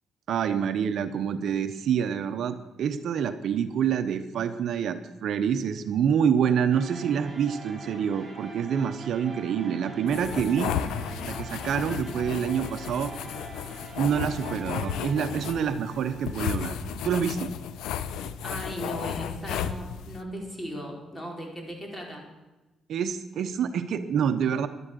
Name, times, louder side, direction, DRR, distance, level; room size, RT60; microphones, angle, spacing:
voice 1, 0.3-10.7 11.3-13.1 14.0-16.8 17.0-17.5 22.9-24.7, right 7 dB, 70° right, 9 dB, 0.9 m, -27 dB
sound 1, 6.7-17.6, right 1 dB, 30° right, 6.2 m, -44 dB
sound 2, 10.1-20.2, left 8 dB, 85° left, 0.8 m, -34 dB
voice 2, 18.4-22.2, equal, 15° left, 0 dB, 4.7 m, -37 dB
12.0 x 11.0 x 6.9 m, 1.1 s
cardioid pair, 90°, 0 cm